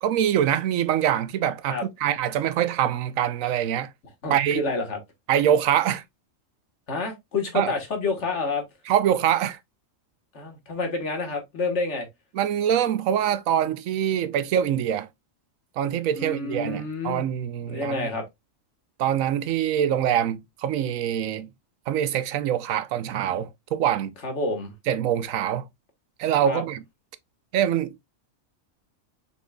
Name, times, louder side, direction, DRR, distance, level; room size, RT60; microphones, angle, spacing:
voice 1, 0.0-3.9 4.3-4.6 5.3-6.0 7.5-7.7 8.9-9.6 12.3-15.1 15.8-18.1 19.0-21.5 21.9-24.2 24.9-25.7 26.2-26.8 27.5-27.9, right 10 dB, 90° right, 1.0 m, -24 dB
voice 2, 4.2-5.0 6.9-8.6 10.3-12.1 16.1-17.2 17.7-18.3 24.2-24.7 26.4-26.6, left 3 dB, 60° left, 1.7 m, -28 dB
6.1 x 3.7 x 2.2 m
omnidirectional pair, 1.3 m